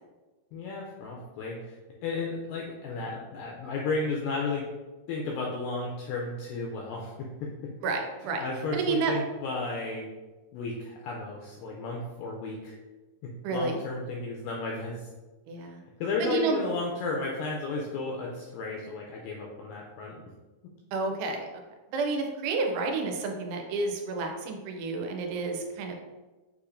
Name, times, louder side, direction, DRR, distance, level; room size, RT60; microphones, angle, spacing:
voice 1, 0.5-1.8 2.0-4.7 5.1-7.7 8.4-10.1 10.5-12.7 13.2-15.1 15.6-15.7 16.0-20.2, left 3 dB, 90° left, -1 dB, 1.9 m, -33 dB
voice 2, 7.8-8.4 8.7-9.2 13.4-13.8 15.5-15.8 16.2-16.6 20.9-21.5 21.9-26.0, right 3 dB, 80° right, 3 dB, 2.4 m, -30 dB
6.7 x 2.8 x 2.5 m, 1.2 s
omnidirectional pair, 4.4 m